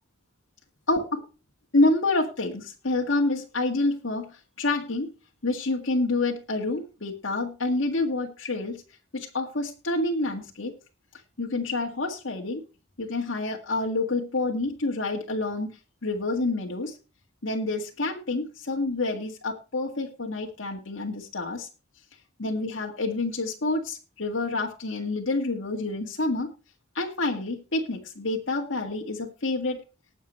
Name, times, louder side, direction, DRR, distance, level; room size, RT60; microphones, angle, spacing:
voice 1, 1.7-5.1 5.4-8.8 9.1-10.7 11.4-12.6 13.0-17.0 17.4-21.6 22.4-26.5 26.9-29.8, left 2 dB, 75° left, 0 dB, 1.8 m, -28 dB
19.5 x 7.2 x 3.2 m, 0.33 s
head